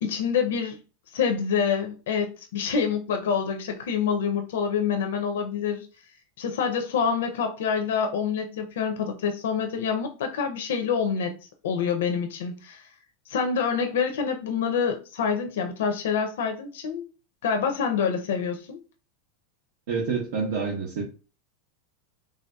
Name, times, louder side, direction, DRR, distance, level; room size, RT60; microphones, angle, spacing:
voice 1, 0.0-0.8 1.1-5.9 6.4-11.4 11.6-12.9 13.3-17.0 17.4-18.8, left 6 dB, 90° left, 5 dB, 0.4 m, -26 dB
voice 2, 19.9-21.0, right 5 dB, 70° right, -1 dB, 0.8 m, -27 dB
3.4 x 2.6 x 2.2 m, 0.35 s
supercardioid pair, 170°, 0 cm